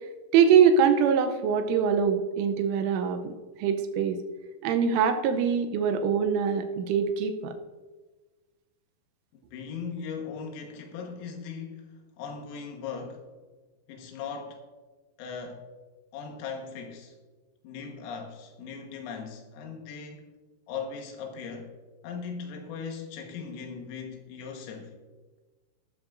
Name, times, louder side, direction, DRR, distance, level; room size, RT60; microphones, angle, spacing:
voice 1, 0.3-3.2 3.6-4.2 4.6-7.5, right 7 dB, 80° right, 3.1 m, -23 dB
voice 2, 9.3-13.3 13.9-14.6 15.2-15.6 16.1-17.2 17.6-20.3 20.7-21.8 22.0-25.0, left 5 dB, 85° left, 4.0 m, -39 dB
14.5 x 12.5 x 2.6 m
omnidirectional pair, 5.9 m